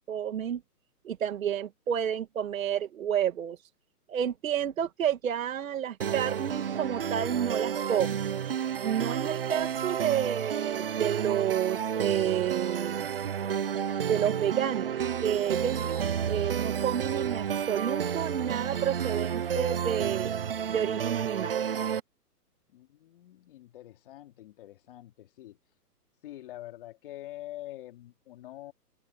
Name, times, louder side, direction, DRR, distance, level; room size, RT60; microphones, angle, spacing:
voice 1, 0.1-0.6 1.0-3.6 4.1-8.2 8.5-13.1 14.1-20.4 20.7-21.6, right 9 dB, 55° right, 2.1 m, -30 dB
sound 1, 6.0-22.0, right 8 dB, 35° right, 0.6 m, -31 dB
voice 2, 22.7-25.6 26.2-28.7, left 15 dB, 35° left, 2.9 m, -45 dB
open air
hypercardioid pair, 165°, 48 cm